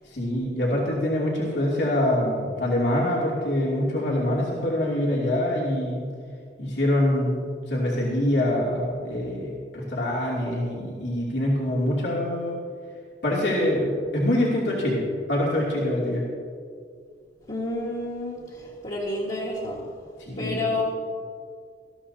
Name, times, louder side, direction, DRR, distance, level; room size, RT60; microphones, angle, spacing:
voice 1, 0.0-6.1 6.6-12.6 13.2-15.0 15.3-16.2 20.3-20.6, left 1 dB, 75° left, -5 dB, 2.8 m, -25 dB
voice 2, 17.5-19.9 20.4-20.8, left 2 dB, 40° left, -6 dB, 1.7 m, -30 dB
20.0 x 14.0 x 2.8 m, 2.2 s
head